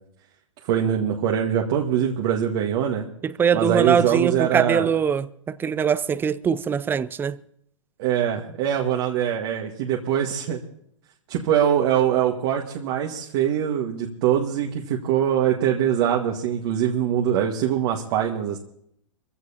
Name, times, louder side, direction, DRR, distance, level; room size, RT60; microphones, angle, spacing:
voice 1, 0.6-3.1 3.5-4.9 8.0-10.6 11.3-18.6, right 9 dB, 50° right, 1.7 m, -23 dB
voice 2, 3.2-7.4, right 7 dB, 15° right, 0.4 m, -22 dB
23.5 x 15.5 x 2.9 m
hypercardioid pair, 120°, 16 cm